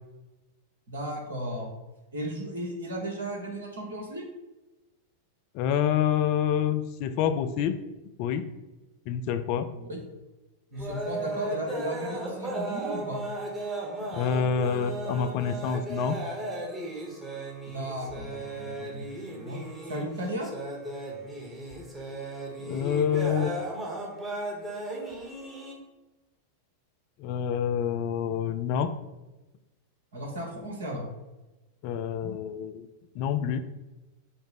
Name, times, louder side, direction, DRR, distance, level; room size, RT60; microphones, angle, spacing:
voice 1, 0.9-1.7 2.1-4.2 9.7-10.0 10.7-13.2 17.7-19.6 19.9-20.5 30.1-31.0, right 1 dB, 70° right, -1 dB, 1.2 m, -35 dB
voice 2, 5.5-7.8 8.2-8.5 9.1-9.7 14.1-16.2 22.6-23.6 27.2-28.9 31.8-32.9 33.2-33.6, left 8 dB, 45° left, 10 dB, 0.3 m, -27 dB
sound 1, 10.8-25.7, right 2 dB, 15° right, 1.1 m, -36 dB
5.0 x 2.0 x 4.2 m, 1.1 s
figure-of-eight pair, 90°, 0 cm